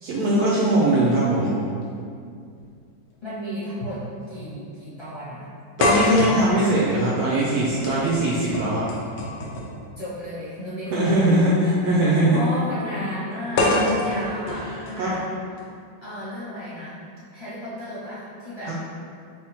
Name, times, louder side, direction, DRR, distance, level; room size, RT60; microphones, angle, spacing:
voice 1, 0.0-1.5 5.8-8.9 10.9-12.4 15.0-15.2 18.6-18.7, right 1 dB, 70° right, -6 dB, 0.9 m, -21 dB
sound 1, 2.6-2.7 3.8-4.0 4.3-4.4 5.8-9.8 11.0-11.2 13.6-15.6, left 2 dB, 70° left, 1.3 m, -25 dB
voice 2, 3.2-5.5 10.0-11.5 12.3-15.2 16.0-18.7, equal, 15° left, -12 dB, 1.3 m, -33 dB
5.2 x 3.5 x 2.9 m, 2.3 s
omnidirectional pair, 2.1 m